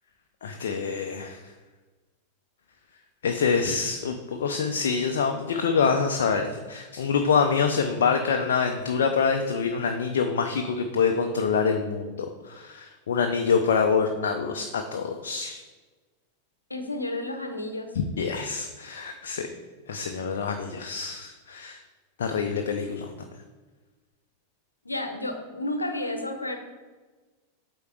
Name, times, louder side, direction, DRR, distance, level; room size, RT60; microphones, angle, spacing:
voice 1, 0.4-1.4 3.2-15.6 17.9-19.5 19.9-21.8 22.2-23.1, left 5 dB, 60° left, 4 dB, 0.6 m, -26 dB
voice 2, 16.7-17.9 24.8-26.6, left 1 dB, 80° left, 6 dB, 0.9 m, -31 dB
8.3 x 4.4 x 4.7 m, 1.3 s
figure-of-eight pair, 90°, 0 cm